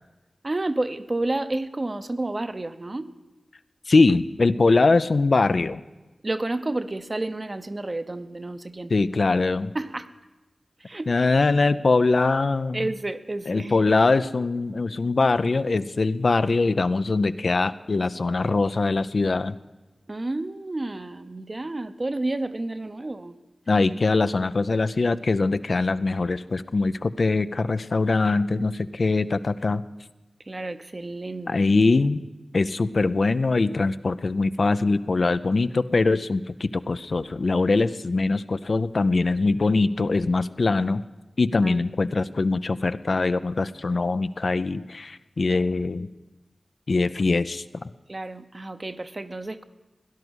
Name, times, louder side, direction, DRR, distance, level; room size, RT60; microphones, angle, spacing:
voice 1, 0.4-3.1 6.2-8.9 9.7-10.1 10.8-11.1 12.7-13.8 20.1-23.4 30.4-31.7 41.6-41.9 48.1-49.6, right 2 dB, 35° right, 10 dB, 0.7 m, -30 dB
voice 2, 3.9-5.8 8.9-9.7 11.1-12.8 13.5-19.5 23.7-29.8 31.5-32.2 32.5-41.0 41.4-46.1 46.9-47.6, left 3 dB, 60° left, 12 dB, 0.5 m, -22 dB
17.0 x 11.0 x 6.3 m, 1.1 s
wide cardioid pair, 70°, 0 cm